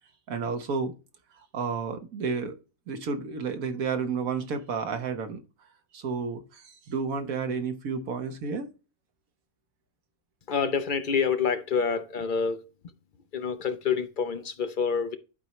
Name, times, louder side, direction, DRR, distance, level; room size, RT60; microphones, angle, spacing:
voice 1, 0.3-0.9 1.5-2.6 2.9-5.4 5.9-8.7, right 5 dB, 80° right, 1.5 m, -31 dB
voice 2, 10.5-12.7 13.3-15.2, left 6 dB, 50° left, 0.6 m, -27 dB
11.0 x 4.5 x 3.1 m
omnidirectional pair, 1.5 m